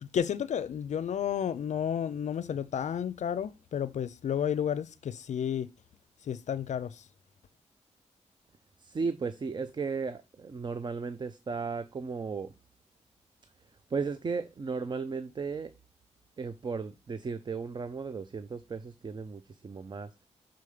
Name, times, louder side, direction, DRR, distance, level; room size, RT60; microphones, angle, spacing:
voice 1, 0.0-5.7 6.3-7.0, left 8 dB, 75° left, 0.4 m, -32 dB
voice 2, 8.8-12.5 13.9-15.7 16.4-20.1, right 4 dB, 40° right, 0.5 m, -35 dB
6.9 x 3.8 x 4.9 m
wide cardioid pair, 95°, 12 cm